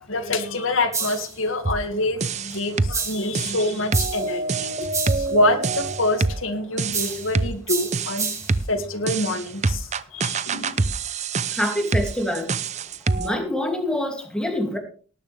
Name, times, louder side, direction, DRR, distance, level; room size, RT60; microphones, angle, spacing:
voice 1, 0.1-4.9 5.1-8.3 8.7-10.8, left 2 dB, 80° left, 7 dB, 2.1 m, -26 dB
sound 1, 0.9-1.4 2.9-3.3 3.9-4.3 4.9-5.3 6.9-7.3 7.7-8.6, right 5 dB, 15° right, 2.8 m, -29 dB
sound 2, 1.6-1.9 2.2-3.0 3.3-6.4 6.8-7.6 7.9-8.7 9.1-13.4, right 3 dB, 35° right, 0.6 m, -26 dB
voice 2, 11.6-12.5 13.2-14.8, left 1 dB, 5° left, 2 dB, 2.7 m, -25 dB
18.5 x 11.0 x 3.5 m, 0.40 s
head